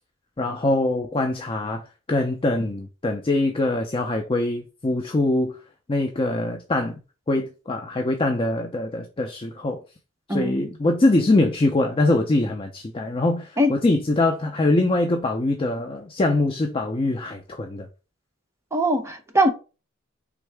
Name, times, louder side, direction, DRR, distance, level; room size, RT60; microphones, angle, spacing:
voice 1, 0.4-5.6 5.9-7.0 7.3-9.8 10.3-17.9, left 2 dB, 25° left, 0.5 m, -23 dB
voice 2, 10.3-10.7 13.6-13.7 18.7-19.5, equal, 15° right, 0.7 m, -21 dB
4.5 x 3.5 x 3.3 m
head